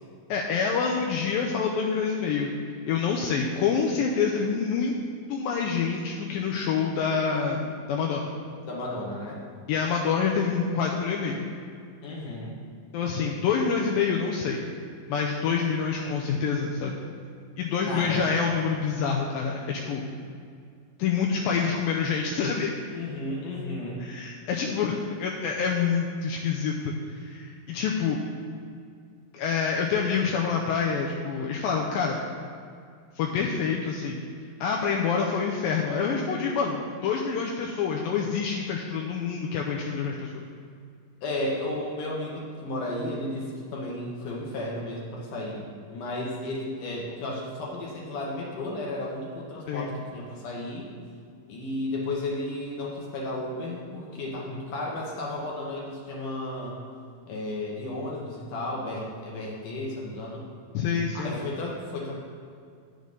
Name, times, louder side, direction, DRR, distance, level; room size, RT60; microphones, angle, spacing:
voice 1, 0.3-2.5 2.9-4.9 5.3-8.3 9.7-11.5 12.9-14.7 15.1-17.0 17.6-20.1 21.0-22.7 24.0-28.2 29.3-32.2 33.2-34.2 34.6-40.4 49.7-49.9 60.7-61.4, left 6 dB, 80° left, -1 dB, 2.3 m, -27 dB
voice 2, 8.6-9.4 12.0-12.5 17.9-18.3 22.9-24.0 41.2-50.9 51.5-56.8 57.3-60.5 61.1-62.2, left 1 dB, 65° left, -3 dB, 2.5 m, -33 dB
9.2 x 6.4 x 5.4 m, 2.3 s
omnidirectional pair, 4.3 m